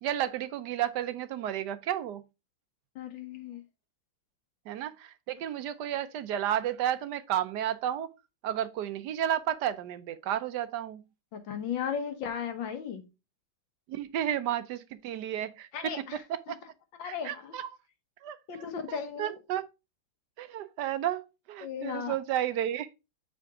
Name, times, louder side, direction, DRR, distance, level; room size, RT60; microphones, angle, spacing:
voice 1, 0.0-2.2 4.7-8.1 8.4-11.0 13.9-15.9 16.3-16.6 17.0-17.7 18.2-19.7 20.4-22.9, right 11 dB, 70° right, 1.1 m, -32 dB
voice 2, 2.9-3.6 11.3-13.1 15.7-16.5 17.0-17.5 18.5-19.4 21.6-22.2, left 7 dB, 75° left, 1.8 m, -36 dB
6.7 x 5.1 x 3.5 m
omnidirectional pair, 2.1 m